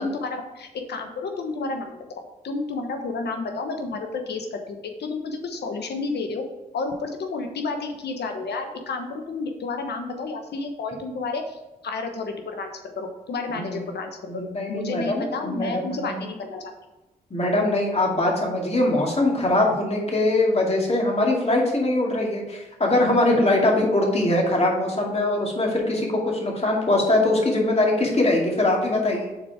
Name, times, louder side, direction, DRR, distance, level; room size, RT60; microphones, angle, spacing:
voice 1, 0.0-2.0 2.4-6.4 6.7-16.7, left 3 dB, 75° left, 5 dB, 1.1 m, -31 dB
voice 2, 14.3-16.2 17.3-29.3, left 2 dB, 35° left, -1 dB, 2.4 m, -22 dB
6.5 x 4.4 x 4.8 m, 1.0 s
supercardioid pair, 45°, 17 cm